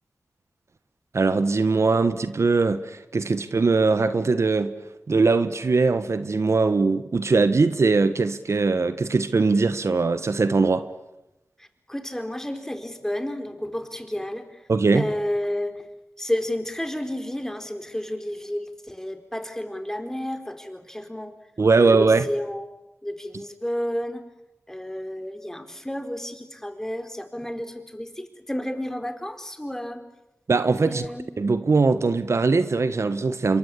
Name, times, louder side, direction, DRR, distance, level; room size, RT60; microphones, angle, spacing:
voice 1, 1.1-4.7 5.1-10.9 14.7-15.1 21.6-22.2 30.5-31.0 31.4-33.6, right 4 dB, 65° right, 1.4 m, -21 dB
voice 2, 11.6-14.6 14.9-15.9 16.2-21.3 21.7-22.7 23.0-24.2 24.7-30.0 30.8-31.3, left 1 dB, 10° left, 4.3 m, -31 dB
27.0 x 23.0 x 8.6 m
cardioid pair, 45°, 5 cm